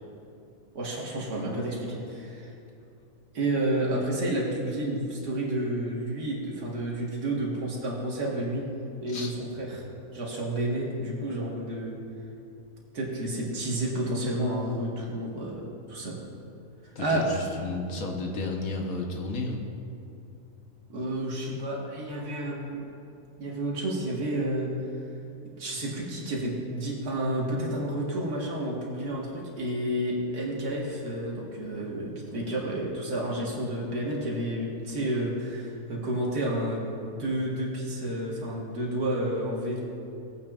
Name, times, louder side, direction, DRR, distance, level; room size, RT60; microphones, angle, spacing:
voice 1, 0.8-2.5 3.3-8.7 9.0-9.8 10.1-12.0 12.9-15.6 15.9-16.2 17.0-17.3 20.9-22.8 23.4-24.7 25.6-39.8, right 1 dB, 90° right, -4 dB, 2.0 m, -30 dB
voice 2, 16.9-19.6, left 3 dB, 65° left, 1 dB, 1.4 m, -32 dB
18.0 x 8.9 x 2.4 m, 2.6 s
omnidirectional pair, 1.6 m